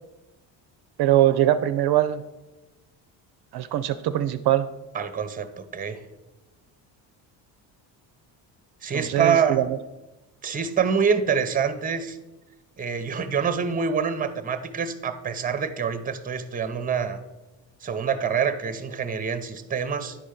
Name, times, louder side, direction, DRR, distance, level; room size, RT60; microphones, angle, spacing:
voice 1, 1.0-2.2 3.5-4.7 8.9-9.7, right 13 dB, 60° right, 11 dB, 0.5 m, -22 dB
voice 2, 4.9-6.0 8.8-9.7 10.4-12.2 12.8-17.2 17.8-20.2, right 6 dB, 20° right, 10 dB, 0.6 m, -26 dB
10.5 x 4.3 x 5.0 m, 1.1 s
cardioid pair, 110°, 45 cm